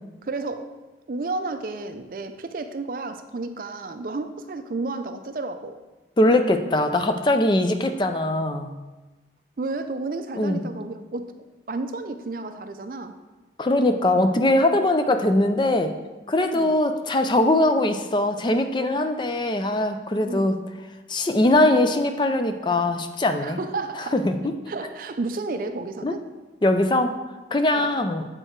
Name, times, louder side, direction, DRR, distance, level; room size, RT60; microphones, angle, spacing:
voice 1, 0.2-0.8 1.1-5.8 9.6-11.3 11.7-13.2 16.5-16.8 20.2-20.5 23.4-24.2 24.7-26.2 27.7-27.9, right 3 dB, 50° right, 9 dB, 0.4 m, -32 dB
voice 2, 6.2-8.7 10.4-10.7 13.6-15.9 16.3-20.6 21.1-23.6 24.1-24.5 26.0-26.1 26.6-27.2 27.5-28.3, left 1 dB, 25° left, 7 dB, 0.4 m, -21 dB
7.6 x 4.6 x 4.5 m, 1.2 s
head